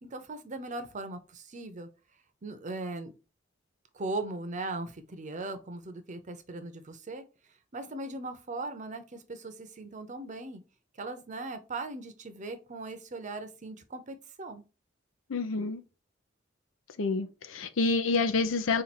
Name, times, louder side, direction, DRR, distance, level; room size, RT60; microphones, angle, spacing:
voice 1, 0.0-1.9 2.4-3.1 3.9-7.2 7.7-10.6 11.0-14.6, right 2 dB, 40° right, 0.7 m, -39 dB
voice 2, 15.3-15.8 17.0-18.8, left 3 dB, 75° left, 0.6 m, -28 dB
4.3 x 2.5 x 4.1 m
head